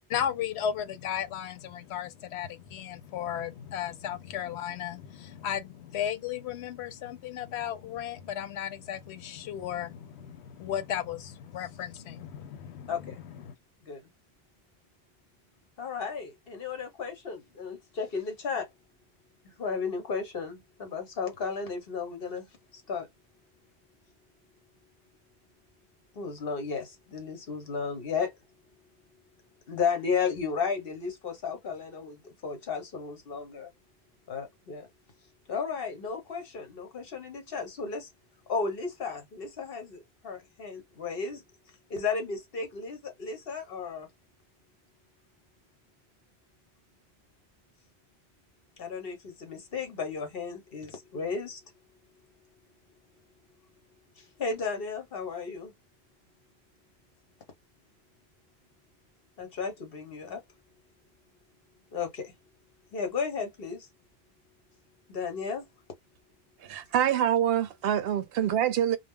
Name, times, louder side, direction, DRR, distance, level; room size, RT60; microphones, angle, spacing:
voice 1, 0.1-13.5, left 9 dB, 85° left, 0.8 m, -35 dB
voice 2, 12.9-13.2 13.8-14.1 15.8-18.7 19.4-22.5 22.7-23.1 26.1-28.3 29.7-33.7 34.3-34.9 35.5-38.1 38.5-41.4 41.9-44.1 48.8-51.6 54.2-55.7 59.4-60.4 61.9-62.3 62.9-63.9 65.1-65.7, left 5 dB, 65° left, 1.1 m, -34 dB
voice 3, 66.6-69.0, right 10 dB, 70° right, 0.8 m, -26 dB
2.3 x 2.0 x 3.5 m
omnidirectional pair, 1.1 m